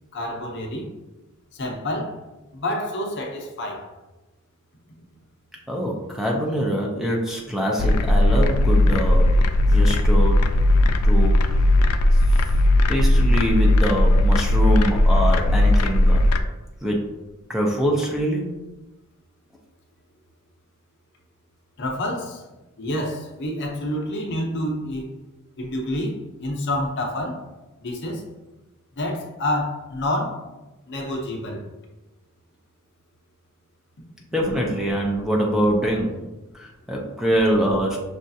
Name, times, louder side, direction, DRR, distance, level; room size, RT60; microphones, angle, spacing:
voice 1, 0.1-0.9 1.5-2.2 2.5-3.9 21.8-22.4 22.8-25.1 25.6-27.5 27.8-28.3 29.0-30.4 30.8-31.7, left 1 dB, 55° left, 0.7 m, -28 dB
voice 2, 5.7-9.2 9.7-10.4 11.0-11.3 12.3-12.4 12.9-16.2 16.8-17.0 17.5-18.4 34.3-36.1 36.5-38.0, equal, ahead, 0.5 m, -24 dB
sound 1, 7.8-16.4, left 1 dB, 85° left, 0.3 m, -17 dB
6.3 x 2.4 x 2.7 m
head